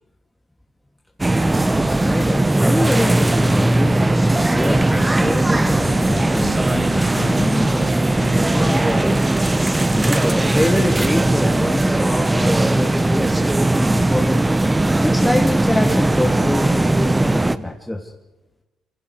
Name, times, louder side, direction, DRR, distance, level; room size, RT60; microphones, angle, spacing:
sound 1, 1.2-17.6, right 2 dB, 15° right, 1.2 m, -18 dB
voice 1, 1.7-4.0 4.5-7.7 8.3-9.2 9.9-14.5 15.0-18.1, left 1 dB, 5° left, 1 dB, 2.9 m, -25 dB
sound 2, 5.6-8.8, left 8 dB, 80° left, 3.5 m, -36 dB
28.0 x 27.0 x 4.9 m, 1.0 s
hypercardioid pair, 50°, 0 cm